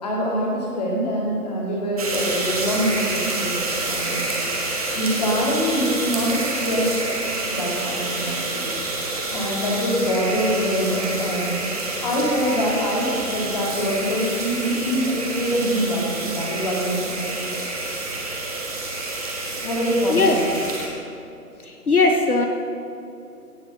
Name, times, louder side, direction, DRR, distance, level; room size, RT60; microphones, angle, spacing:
voice 1, 0.0-4.2 4.9-7.1 7.5-8.7 9.3-11.6 11.9-17.5 19.6-20.4, equal, 25° left, -3 dB, 2.3 m, -24 dB
sound 1, 2.0-20.9, right 2 dB, 25° right, 1.5 m, -28 dB
voice 2, 20.1-20.4 21.6-22.5, left 3 dB, 65° left, 4 dB, 1.2 m, -19 dB
17.5 x 6.5 x 6.1 m, 2.7 s
figure-of-eight pair, 150°, 47 cm